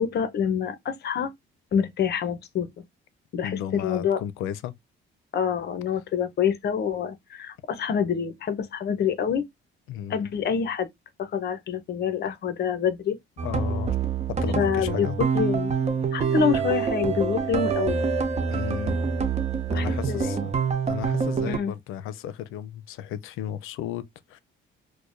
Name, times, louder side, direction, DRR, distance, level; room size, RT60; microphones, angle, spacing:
voice 1, 0.0-1.3 1.7-2.7 3.3-4.2 5.3-9.5 10.1-10.9 11.2-13.2 14.5-15.7 16.1-18.0 19.7-20.4 21.4-21.7, left 7 dB, 55° left, 0.8 m, -26 dB
voice 2, 3.4-4.7 9.9-10.3 12.3-12.4 13.4-14.0 14.4-15.2 18.5-18.9 19.7-20.5 20.9-24.0 24.3-24.4, left 10 dB, 90° left, 0.5 m, -34 dB
sound 1, 13.4-21.6, right 6 dB, 35° right, 0.6 m, -26 dB
4.6 x 2.2 x 2.5 m
cardioid pair, 110°, 20 cm